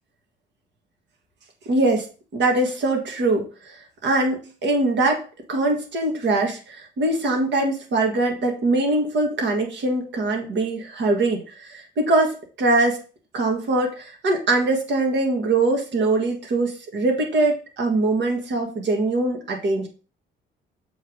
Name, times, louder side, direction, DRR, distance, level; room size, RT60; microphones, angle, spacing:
voice 1, 1.7-2.1 2.3-5.2 5.5-13.0 13.3-19.9, right 2 dB, 65° right, 2 dB, 1.8 m, -22 dB
7.0 x 3.4 x 5.1 m, 0.36 s
cardioid pair, 90°, 20 cm